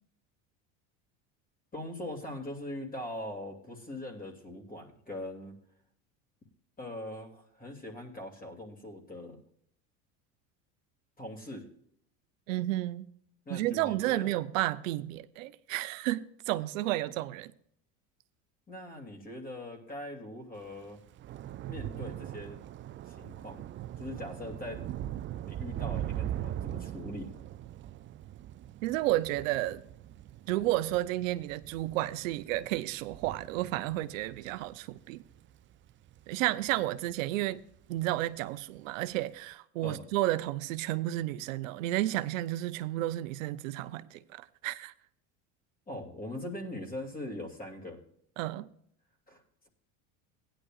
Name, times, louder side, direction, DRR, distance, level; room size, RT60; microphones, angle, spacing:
voice 1, 1.7-5.5 6.8-9.4 11.2-11.7 13.5-14.3 18.7-21.0 21.7-22.6 23.1-23.6 24.0-24.8 25.5-27.3 39.8-40.1 45.9-48.0 49.3-49.7, left 1 dB, 20° left, 2.7 m, -41 dB
voice 2, 12.5-13.1 13.5-17.5 28.8-29.8 30.5-35.2 36.3-37.6 37.9-44.9 48.4-48.7, right 16 dB, 85° right, 0.7 m, -32 dB
Thunder / Rain, 20.6-37.2 37.6-38.0 38.3-38.5, right 12 dB, 30° right, 0.4 m, -41 dB
16.0 x 10.0 x 2.4 m
supercardioid pair, 95°, 38 cm